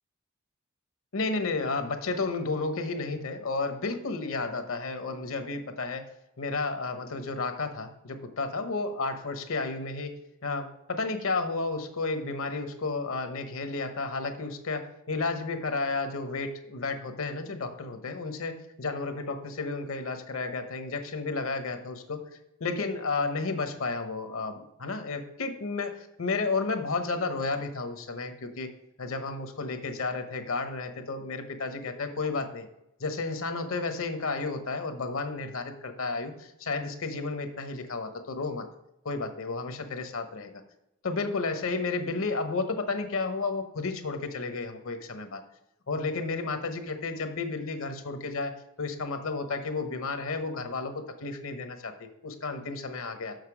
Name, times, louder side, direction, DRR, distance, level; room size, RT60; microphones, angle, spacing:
voice 1, 1.1-6.0 6.4-10.1 10.4-18.5 18.8-22.2 22.6-25.9 26.2-28.7 29.0-32.7 33.0-38.7 39.0-40.5 41.0-45.4 45.9-48.5 48.8-53.3, left 3 dB, 70° left, 7 dB, 1.0 m, -32 dB
6.6 x 6.4 x 4.9 m, 0.86 s
head